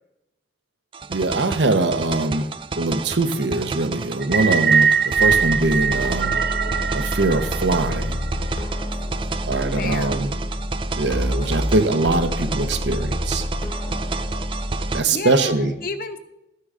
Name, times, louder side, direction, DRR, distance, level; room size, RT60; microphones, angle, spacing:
sound 1, 0.9-15.0, right 4 dB, 30° right, 0.3 m, -32 dB
voice 1, 1.1-2.5 2.8-6.4 6.9-8.2 9.5-10.3 11.0-13.4 14.9-15.7, right 2 dB, 85° right, 9 dB, 0.9 m, -22 dB
sound 2, 4.2-8.5, right 7 dB, 60° right, 1.0 m, -22 dB
sound 3, 5.2-15.0, equal, 25° left, 0.9 m, -28 dB
voice 2, 9.7-10.2 15.1-16.2, left 3 dB, 50° left, 8 dB, 0.8 m, -31 dB
13.0 x 9.6 x 3.7 m, 0.88 s
head